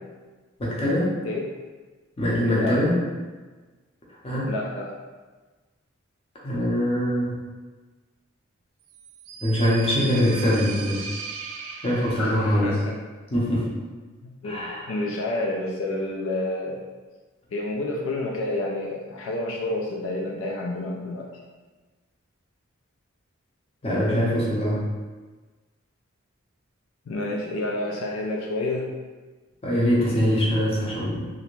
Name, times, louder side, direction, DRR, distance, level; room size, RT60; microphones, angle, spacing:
voice 1, 0.6-1.2 2.2-3.0 4.2-4.5 6.4-7.4 9.4-11.0 11.8-12.7 13.3-13.7 14.4-14.9 23.8-24.8 29.6-31.3, equal, 30° left, -5 dB, 0.6 m, -23 dB
voice 2, 4.5-4.9 12.2-13.0 14.2-14.6 14.9-16.8 17.5-21.3 27.1-28.9, left 2 dB, 75° left, -1 dB, 0.4 m, -29 dB
sound 1, 8.9-12.6, right 5 dB, 85° right, 0.3 m, -38 dB
2.5 x 2.1 x 3.0 m, 1.3 s
head